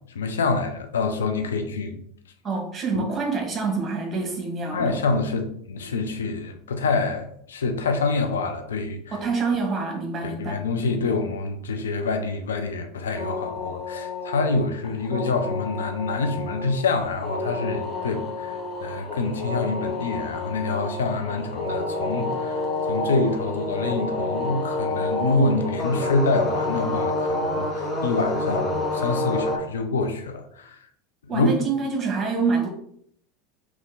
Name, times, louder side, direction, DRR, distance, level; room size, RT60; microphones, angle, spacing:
voice 1, 0.1-2.0 2.9-3.1 4.7-9.2 10.2-30.9 31.2-31.5, left 3 dB, 75° left, 6 dB, 0.5 m, -26 dB
voice 2, 2.4-5.0 9.1-11.0 31.3-32.7, right 4 dB, 25° right, 1 dB, 1.5 m, -26 dB
sound 1, 13.2-29.6, left 2 dB, 15° left, 1.2 m, -29 dB
3.6 x 3.0 x 3.8 m, 0.67 s
figure-of-eight pair, 80°, 0 cm